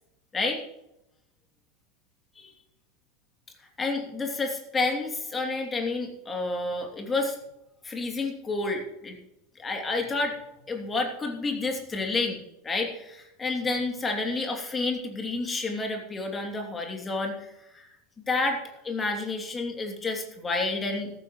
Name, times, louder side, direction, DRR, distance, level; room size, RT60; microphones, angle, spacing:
voice 1, 3.8-7.4 7.8-9.2 9.6-10.4 10.7-17.8 18.3-21.1, left 3 dB, 20° left, 3 dB, 2.9 m, -30 dB
14.5 x 14.0 x 3.2 m, 0.84 s
figure-of-eight pair, 80°, 0 cm